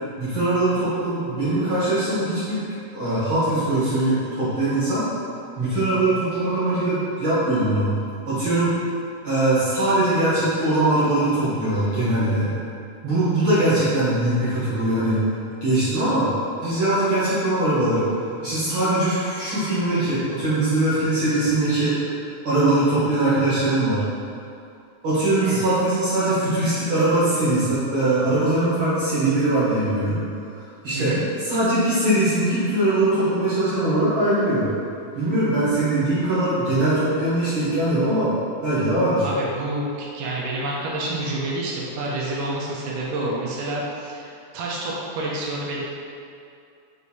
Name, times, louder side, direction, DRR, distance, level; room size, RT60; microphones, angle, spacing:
voice 1, 0.2-2.6 2.9-5.1 5.6-8.0 8.3-8.8 9.2-12.5 13.0-15.2 15.6-16.3 16.6-18.1 18.4-22.0 22.4-24.1 25.0-30.2 30.8-34.7 35.1-38.3 38.6-39.3, right 1 dB, 65° right, -12 dB, 1.2 m, -21 dB
voice 2, 39.2-45.8, right 2 dB, 85° right, -4 dB, 2.1 m, -28 dB
6.2 x 2.5 x 2.7 m, 2.5 s
omnidirectional pair, 3.7 m